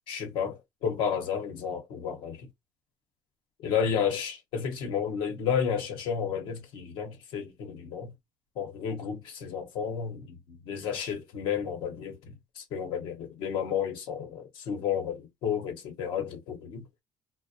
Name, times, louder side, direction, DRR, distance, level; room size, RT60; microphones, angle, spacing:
voice 1, 0.1-2.5 3.6-8.1 8.6-16.9, left 7 dB, 80° left, 0.8 m, -32 dB
2.4 x 2.0 x 2.5 m
cardioid pair, 110°, 8 cm